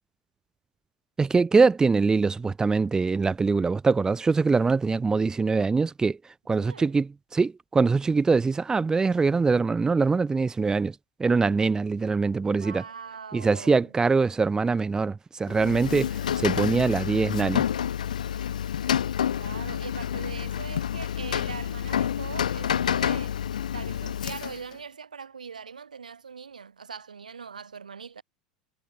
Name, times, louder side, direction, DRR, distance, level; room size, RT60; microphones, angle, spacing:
voice 1, 1.2-6.2 6.5-10.9 11.2-12.8 13.3-17.6, right 4 dB, 15° right, 1.3 m, -23 dB
voice 2, 12.6-13.9 19.3-23.3 23.7-28.2, right 6 dB, 85° right, 5.4 m, -41 dB
Rain, 15.5-24.8, left 9 dB, 80° left, 0.6 m, -28 dB
hypercardioid pair, 85°, 4 cm